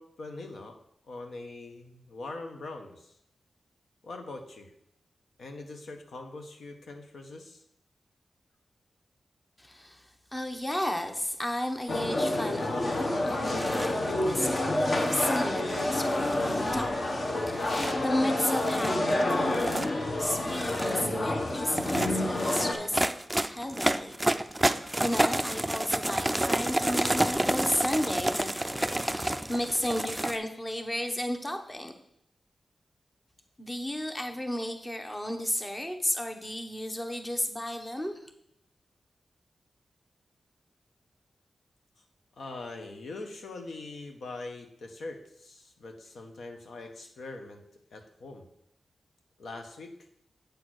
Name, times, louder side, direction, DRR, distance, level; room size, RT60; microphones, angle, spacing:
voice 1, 0.0-3.1 4.0-4.7 5.4-7.6 42.3-47.6 47.9-48.5 49.4-50.0, left 2 dB, 80° left, 4 dB, 1.3 m, -42 dB
voice 2, 9.6-16.9 17.2-23.0 23.5-24.2 25.0-31.9 33.6-38.3, left 1 dB, 15° left, 5 dB, 1.0 m, -33 dB
sound 1, 11.9-22.7, left 1 dB, 45° left, 1.2 m, -28 dB
sound 2, 13.5-14.0 14.9-15.4 16.1-16.9 17.6-17.9 18.5-18.9 19.5-19.9 20.4-21.0 21.7-30.4, right 1 dB, 10° right, 0.4 m, -30 dB
8.4 x 4.3 x 6.4 m, 0.74 s
wide cardioid pair, 130°, 0 cm